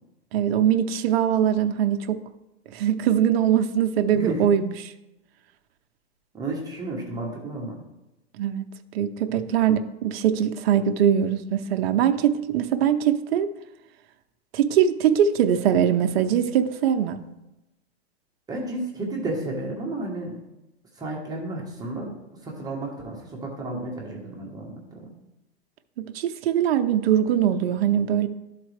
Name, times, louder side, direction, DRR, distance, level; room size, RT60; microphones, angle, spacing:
voice 1, 0.3-2.2 2.7-4.7 8.4-8.6 8.9-13.5 14.5-17.2 26.0-28.3, right 9 dB, 65° right, 6 dB, 0.6 m, -22 dB
voice 2, 4.1-4.4 6.3-7.8 9.3-9.4 18.5-20.4 20.9-22.1 22.4-25.1, right 2 dB, 10° right, -2 dB, 1.1 m, -32 dB
12.0 x 4.0 x 3.3 m, 0.96 s
hypercardioid pair, 145°, 33 cm